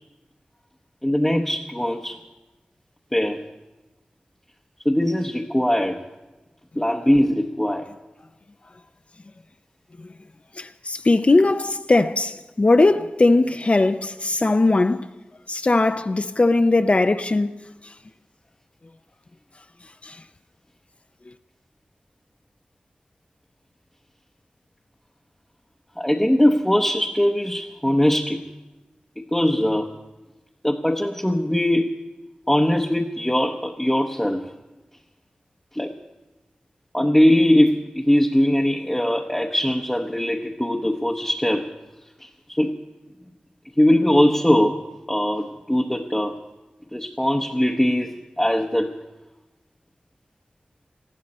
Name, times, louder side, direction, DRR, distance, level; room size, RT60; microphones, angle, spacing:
voice 1, 1.0-2.2 3.1-3.4 4.8-6.0 6.8-7.9 26.0-28.4 29.3-29.9 30.6-32.0 32.5-34.5 35.7-35.9 36.9-41.7 42.2-42.7 43.8-46.4 46.9-48.9, left 1 dB, 10° left, 0.8 m, -21 dB
voice 2, 10.6-15.1 15.5-17.9 20.0-20.2, left 2 dB, 40° left, 0.5 m, -19 dB
20.0 x 15.0 x 4.2 m
wide cardioid pair, 85°, 3 cm